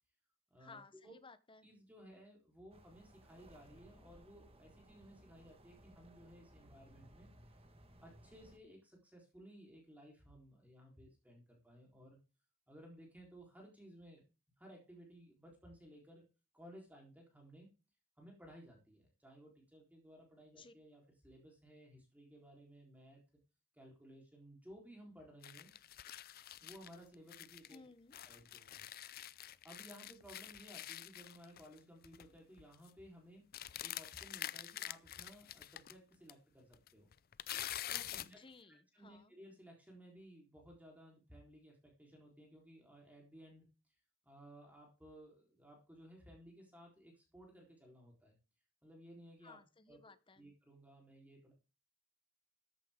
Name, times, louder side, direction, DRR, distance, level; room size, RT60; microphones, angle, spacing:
voice 1, 0.6-1.7 20.6-20.7 27.7-28.2 38.2-39.3 49.4-50.5, left 4 dB, 25° left, 0.9 m, -58 dB
voice 2, 1.6-7.3 8.0-12.2 12.7-14.2 14.6-16.3 16.5-17.7 18.2-23.2 23.7-25.7 26.6-27.8 28.2-28.9 29.6-33.5 33.8-37.1 37.9-38.4 38.9-43.7 44.2-48.3 48.8-49.6 49.9-50.0 50.4-51.5, equal, 5° right, 3.9 m, -58 dB
sound 1, 2.7-8.6, right 1 dB, 25° right, 1.5 m, -62 dB
sound 2, 25.4-27.8 28.1-31.8 32.0-32.3 32.6-32.9 33.5-35.9 36.3-36.4 36.7-38.4, left 12 dB, 45° left, 0.5 m, -46 dB
14.0 x 10.5 x 3.7 m
head